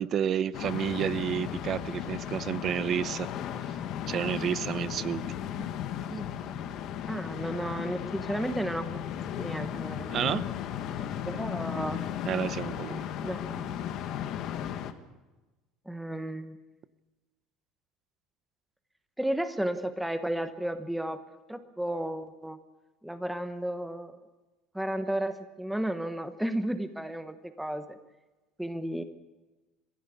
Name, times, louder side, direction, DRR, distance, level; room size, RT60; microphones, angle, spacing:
voice 1, 0.0-3.3 4.1-5.2 10.1-10.5 12.2-13.0, right 9 dB, 35° right, 16 dB, 0.7 m, -30 dB
sound 1, 0.5-14.9, left 10 dB, 50° left, 1.6 m, -35 dB
voice 2, 7.1-9.0 9.4-10.4 11.3-12.1 13.2-13.6 15.9-16.6 19.2-21.2 21.5-22.6 23.0-24.2 24.7-28.0 28.6-29.0, right 1 dB, 5° right, 8 dB, 1.1 m, -33 dB
23.0 x 16.0 x 8.4 m, 1.1 s
cardioid pair, 155°, 0 cm